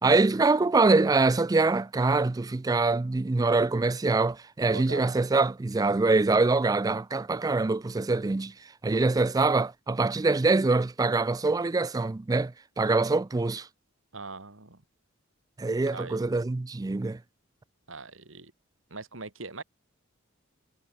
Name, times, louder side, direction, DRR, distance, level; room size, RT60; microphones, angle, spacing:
voice 1, 0.0-8.5 8.8-13.7 15.6-17.2, right 3 dB, 20° right, 0.3 m, -24 dB
voice 2, 4.7-5.1 14.1-14.8 15.9-16.2 17.9-18.5 18.9-19.6, right 3 dB, 65° right, 2.7 m, -41 dB
head